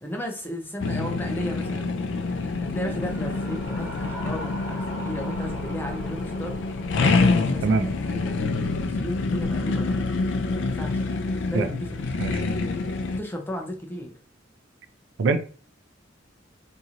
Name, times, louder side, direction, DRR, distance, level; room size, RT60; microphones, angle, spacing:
voice 1, 0.0-1.9 2.5-10.1 10.5-11.1 11.4-12.4 13.1-14.1, equal, 10° left, 2 dB, 0.5 m, -35 dB
sound 1, 0.8-13.2, left 3 dB, 65° left, 0.4 m, -27 dB
sound 2, 2.2-7.3, right 1 dB, 10° right, 1.1 m, -40 dB
voice 2, 7.6-7.9 11.5-11.7 12.2-12.4 15.2-15.4, right 4 dB, 70° right, 9 dB, 0.4 m, -22 dB
2.9 x 2.7 x 2.4 m, 0.40 s
head